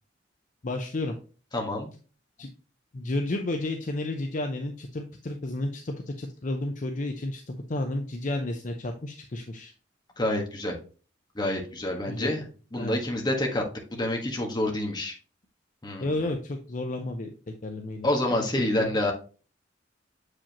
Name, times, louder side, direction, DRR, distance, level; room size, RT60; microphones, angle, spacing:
voice 1, 0.6-1.2 2.4-2.5 2.9-9.7 12.1-12.3 12.8-13.0 16.0-18.4 18.8-18.9, left 2 dB, 45° left, 4 dB, 0.6 m, -32 dB
voice 2, 1.5-1.9 10.2-10.7 11.3-12.4 12.7-15.1 15.8-16.1 18.0-19.1, left 1 dB, 25° left, 1 dB, 1.4 m, -27 dB
7.3 x 4.9 x 2.9 m, 0.37 s
head